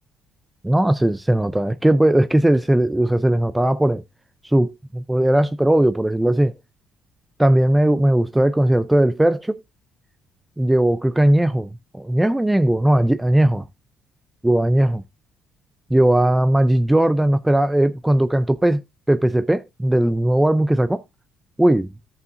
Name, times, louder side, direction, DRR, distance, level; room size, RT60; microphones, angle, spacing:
voice 1, 0.6-4.0 4.4-6.5 7.4-9.6 10.6-13.6 14.4-15.0 15.9-18.8 19.1-21.0 21.6-21.9, right 1 dB, 5° right, 0.4 m, -18 dB
16.5 x 5.5 x 2.5 m
cardioid pair, 125°, 0 cm